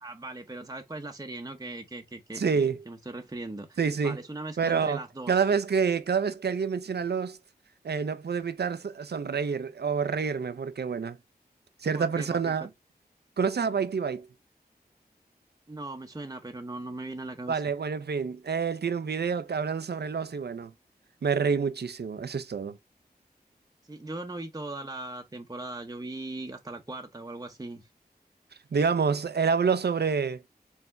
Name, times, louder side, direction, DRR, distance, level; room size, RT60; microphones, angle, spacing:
voice 1, 0.0-2.4 2.9-5.3 11.9-12.5 15.7-17.6 23.9-27.8, right 2 dB, 20° right, 0.8 m, -39 dB
voice 2, 2.3-2.8 3.8-4.2 4.6-5.0 5.3-7.4 7.8-11.2 11.8-12.7 13.4-14.3 17.5-20.7 21.2-22.8 28.7-30.4, right 6 dB, 80° right, 0.6 m, -27 dB
4.5 x 3.4 x 2.6 m
wide cardioid pair, 65°, 17 cm